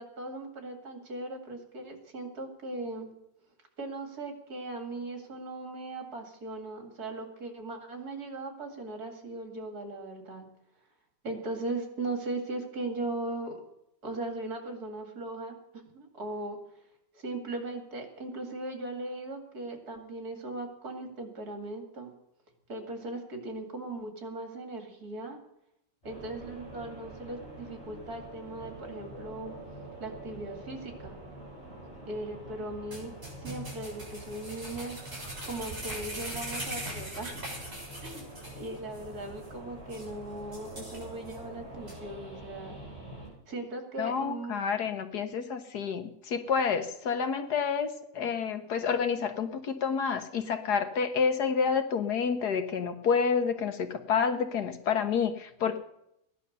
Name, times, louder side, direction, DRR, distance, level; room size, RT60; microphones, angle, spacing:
voice 1, 0.0-3.1 3.8-10.5 11.2-13.6 14.0-16.6 17.1-22.1 22.7-25.4 26.0-29.6 30.0-31.2 32.1-33.1 33.4-35.0 35.4-37.4 38.0-42.8 43.5-44.6, right 2 dB, 60° right, 4 dB, 3.0 m, -38 dB
sound 1, 26.0-43.3, right 2 dB, 15° right, 7.5 m, -46 dB
sound 2, 32.9-38.6 38.9-39.0 39.4-39.5 39.9-40.1 40.5-41.3 41.9-42.0, right 1 dB, 35° right, 7.1 m, -40 dB
voice 2, 44.0-47.9 48.1-55.8, left 6 dB, 65° left, 8 dB, 1.7 m, -29 dB
16.0 x 11.0 x 6.7 m, 0.78 s
omnidirectional pair, 1.9 m